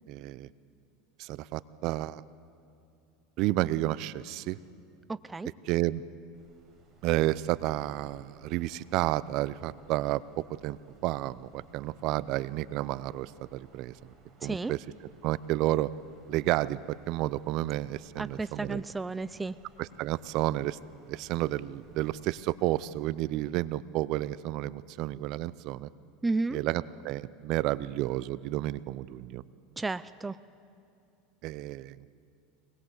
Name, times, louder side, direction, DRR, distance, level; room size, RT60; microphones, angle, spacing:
voice 1, 0.1-0.5 1.2-2.2 3.4-4.6 5.6-6.0 7.0-14.1 14.4-14.8 15.2-15.9 16.3-18.8 19.8-20.8 21.1-25.9 26.5-29.4 31.4-32.0, right 16 dB, 55° right, 19 dB, 0.6 m, -31 dB
voice 2, 5.1-5.5 14.4-14.7 18.2-19.6 26.2-26.6 29.8-30.4, right 3 dB, 15° right, 15 dB, 0.5 m, -32 dB
Wind, 6.3-23.1, right 3 dB, 30° right, 5.6 m, -60 dB
24.0 x 20.0 x 8.2 m, 2.6 s
supercardioid pair, 120°, 0 cm